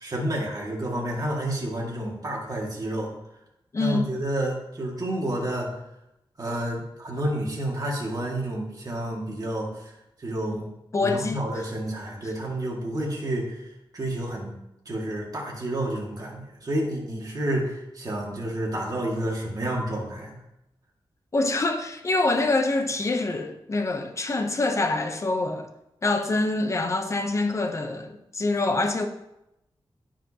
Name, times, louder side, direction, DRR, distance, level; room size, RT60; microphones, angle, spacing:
voice 1, 0.0-3.1 3.8-5.7 6.4-9.9 10.2-10.7 11.0-14.6 14.9-20.3, right 1 dB, 40° right, 2.0 m, -30 dB
voice 2, 3.7-4.1 10.9-11.5 21.3-25.7 26.0-29.1, left 2 dB, 35° left, 0.7 m, -25 dB
14.5 x 5.0 x 2.9 m
wide cardioid pair, 170°, 9 cm